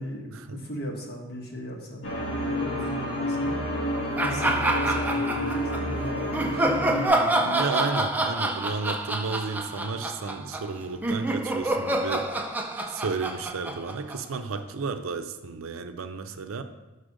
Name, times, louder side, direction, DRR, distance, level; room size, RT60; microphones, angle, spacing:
voice 1, 0.0-3.5 4.1-7.5, equal, 50° left, 0 dB, 1.2 m, -37 dB
sound 1, 2.0-7.1, left 1 dB, 75° left, 1.6 m, -29 dB
sound 2, 4.2-5.8 6.3-14.6, right 2 dB, 10° right, 0.4 m, -27 dB
voice 2, 7.4-12.3 12.9-16.6, right 4 dB, 90° right, 8 dB, 0.5 m, -32 dB
6.2 x 4.1 x 5.2 m, 1.1 s
head